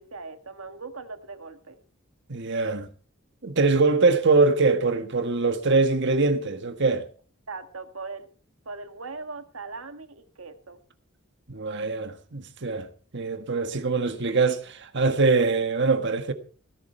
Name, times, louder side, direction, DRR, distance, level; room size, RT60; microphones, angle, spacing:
voice 1, 0.0-1.8 7.5-8.3 8.6-10.8, right 4 dB, 80° right, 1.7 m, -39 dB
voice 2, 2.3-2.9 3.4-7.1 11.5-12.9 13.1-16.3, right 3 dB, 60° right, 1.5 m, -23 dB
17.0 x 11.5 x 4.5 m
head